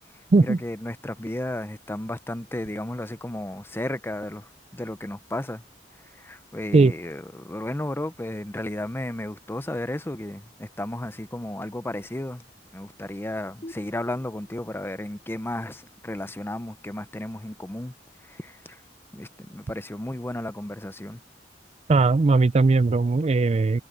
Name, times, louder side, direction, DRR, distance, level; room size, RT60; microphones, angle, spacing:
voice 1, 0.4-5.6 5.9-12.4 12.7-17.9 18.2-18.8 19.1-21.2, left 1 dB, 15° left, 0.7 m, -33 dB
sound 1, 16.8-17.0, left 1 dB, 40° left, 4.4 m, -49 dB
voice 2, 21.9-23.8, right 3 dB, 35° right, 0.4 m, -19 dB
head